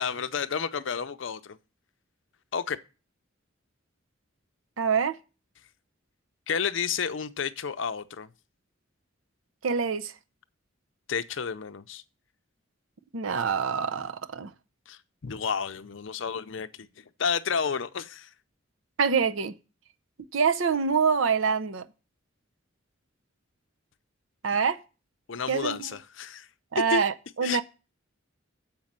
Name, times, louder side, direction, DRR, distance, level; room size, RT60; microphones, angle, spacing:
voice 1, 0.0-1.6 2.5-2.8 6.5-8.3 11.1-12.0 14.9-16.9 17.2-18.3 25.3-26.5 26.9-27.0 27.4-27.6, left 6 dB, 65° left, 0.6 m, -31 dB
voice 2, 4.8-5.2 9.6-10.1 13.1-14.5 19.0-19.6 20.3-21.8 24.4-24.8 25.5-25.8 26.7-27.6, right 6 dB, 75° right, 0.6 m, -25 dB
7.4 x 5.3 x 7.3 m
head